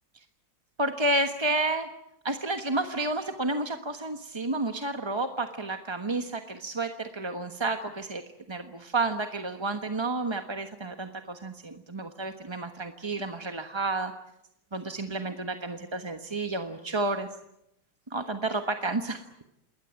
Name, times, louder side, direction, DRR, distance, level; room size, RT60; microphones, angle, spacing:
voice 1, 0.8-1.9 2.2-8.2 8.5-14.1 14.7-17.3 18.1-19.2, right 2 dB, 20° right, 6 dB, 1.0 m, -30 dB
28.0 x 20.5 x 8.8 m, 0.81 s
omnidirectional pair, 2.2 m